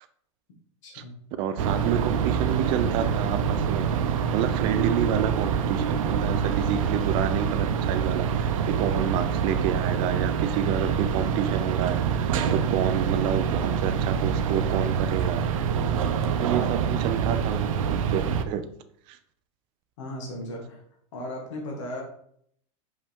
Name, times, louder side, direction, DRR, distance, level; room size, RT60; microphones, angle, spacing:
voice 1, 0.8-1.1 16.5-16.7 20.0-20.8 21.1-22.0, left 1 dB, 65° left, -1 dB, 2.2 m, -36 dB
voice 2, 1.4-3.9 4.3-15.4 16.2-17.6 17.9-18.6 19.1-19.2, right 9 dB, 30° right, 10 dB, 0.5 m, -29 dB
sound 1, 1.6-18.4, right 7 dB, 90° right, 0.7 m, -26 dB
5.9 x 5.5 x 3.6 m, 0.67 s
supercardioid pair, 175°, 17 cm